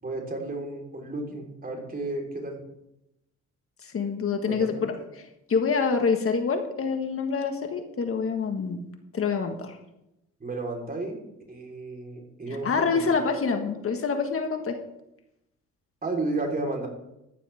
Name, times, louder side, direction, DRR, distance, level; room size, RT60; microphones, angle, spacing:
voice 1, 0.0-2.6 4.5-4.8 10.4-11.2 11.5-12.7 12.9-13.0 16.0-16.9, right 2 dB, 30° right, 0 dB, 4.2 m, -32 dB
voice 2, 3.8-8.8 9.1-9.8 12.6-14.8, left 5 dB, 45° left, 5 dB, 1.7 m, -26 dB
14.5 x 10.5 x 3.6 m, 0.84 s
cardioid pair, 90°, 30 cm